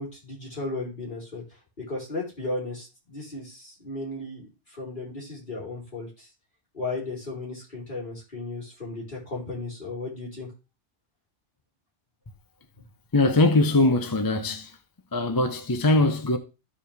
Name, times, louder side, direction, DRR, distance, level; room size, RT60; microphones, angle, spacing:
voice 1, 0.0-1.4 1.9-6.3 6.7-10.5, left 2 dB, 40° left, 4.0 m, -35 dB
voice 2, 13.1-14.8 15.1-16.4, left 2 dB, 25° left, 0.5 m, -21 dB
14.0 x 4.9 x 3.4 m
omnidirectional pair, 1.2 m